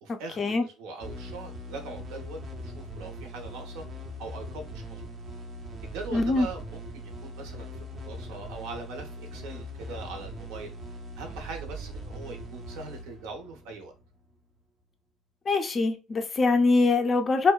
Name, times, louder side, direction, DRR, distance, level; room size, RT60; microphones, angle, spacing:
voice 1, 0.0-3.8 4.2-5.0 5.8-10.7 11.2-13.9, right 3 dB, 85° right, 0.7 m, -41 dB
sound 1, 1.0-14.3, equal, 30° right, 0.5 m, -41 dB
voice 2, 6.1-6.5 15.5-17.5, left 3 dB, 25° left, 0.3 m, -23 dB
2.7 x 2.1 x 2.2 m
cardioid pair, 150°, 0 cm